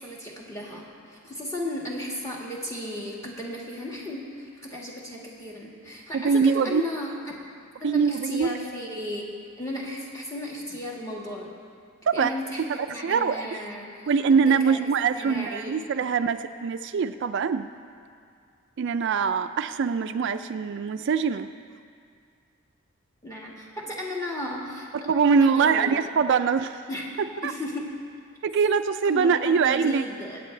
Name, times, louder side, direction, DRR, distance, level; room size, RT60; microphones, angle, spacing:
voice 1, 0.0-7.1 7.8-9.2 9.6-11.5 12.1-14.0 14.3-14.8 15.1-15.7 23.2-24.9 25.2-26.0 26.9-27.1 27.4-27.9 29.0-30.4, left 1 dB, 15° left, -3 dB, 1.7 m, -35 dB
voice 2, 6.1-6.8 7.8-8.6 12.1-12.3 13.0-13.5 14.1-17.7 18.8-21.5 25.1-26.8 27.4-27.5 28.4-30.0, right 6 dB, 60° right, 9 dB, 0.4 m, -23 dB
25.0 x 8.5 x 3.3 m, 2.3 s
head